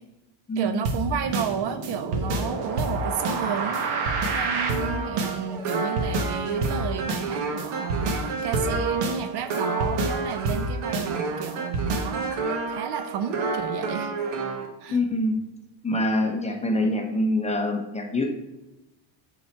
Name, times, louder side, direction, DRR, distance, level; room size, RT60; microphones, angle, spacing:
voice 1, 0.6-14.1 14.8-15.0 16.5-16.9, right 7 dB, 55° right, 9 dB, 0.7 m, -32 dB
sound 1, 0.9-14.7, right 3 dB, 85° right, 1.4 m, -28 dB
voice 2, 14.9-15.4 15.8-18.3, left 1 dB, 15° left, 3 dB, 0.8 m, -25 dB
9.3 x 4.1 x 4.4 m, 0.99 s
cardioid pair, 150°, 49 cm